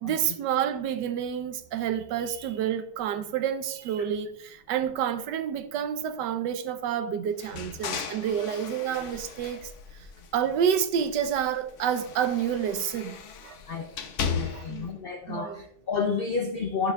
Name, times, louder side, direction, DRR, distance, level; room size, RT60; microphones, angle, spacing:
voice 1, 0.0-9.7 10.3-13.2 13.4-13.6 14.5-14.9 15.3-15.6, right 9 dB, 90° right, 1.3 m, -29 dB
sound 1, 7.4-10.6 10.9-14.9, left 6 dB, 60° left, 0.9 m, -37 dB
voice 2, 14.3-16.9, left 5 dB, 80° left, 0.5 m, -30 dB
10.5 x 6.9 x 2.3 m
omnidirectional pair, 1.8 m